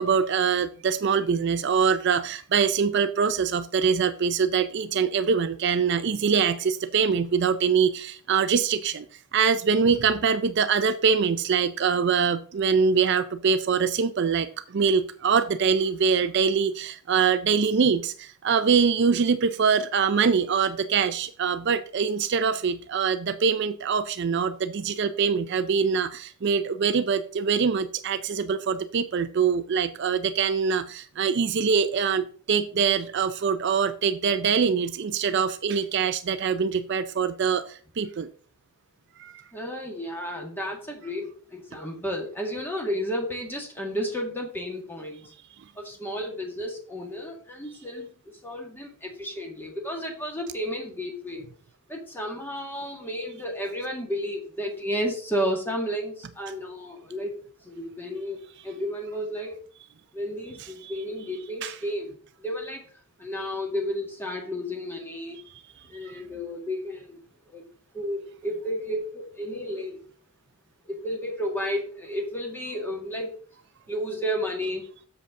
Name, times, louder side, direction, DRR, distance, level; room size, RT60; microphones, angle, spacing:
voice 1, 0.0-9.1 9.3-38.3 39.2-39.3 60.8-60.9 61.6-61.7, right 6 dB, 50° right, 12 dB, 0.4 m, -24 dB
voice 2, 39.5-45.3 45.8-51.4 51.9-57.4 57.6-58.4 58.6-59.6 60.1-62.8 63.2-65.4 65.9-67.2 67.5-67.7 67.9-70.0 70.8-73.3 73.9-74.8, equal, 10° left, 1 dB, 1.8 m, -32 dB
7.3 x 6.9 x 3.7 m, 0.43 s
head